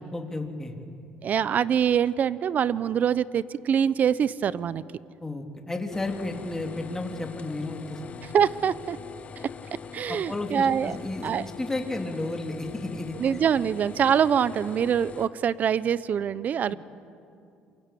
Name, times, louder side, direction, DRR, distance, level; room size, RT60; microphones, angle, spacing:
voice 1, 0.1-0.7 5.2-8.2 10.1-13.2 16.7-16.8, left 2 dB, 15° left, 3 dB, 3.3 m, -33 dB
voice 2, 1.2-4.8 8.3-9.0 9.9-11.0 11.2-11.5 13.2-16.7, right 8 dB, 45° right, 18 dB, 0.8 m, -24 dB
sound 1, 5.9-15.3, left 6 dB, 35° left, 1.4 m, -42 dB
27.5 x 23.5 x 8.6 m, 2.6 s
cardioid pair, 100°, 4 cm